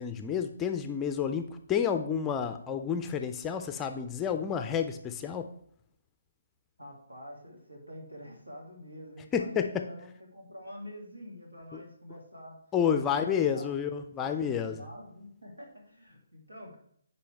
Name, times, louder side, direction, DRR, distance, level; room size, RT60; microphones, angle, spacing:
voice 1, 0.0-5.5 9.3-9.9 11.7-11.8 12.7-14.8, left 7 dB, 15° left, 7 dB, 0.5 m, -30 dB
voice 2, 6.8-12.6 12.9-13.9 14.2-16.8, equal, 80° right, 0 dB, 2.4 m, -47 dB
10.5 x 4.2 x 3.4 m, 0.65 s
figure-of-eight pair, 140°, 0 cm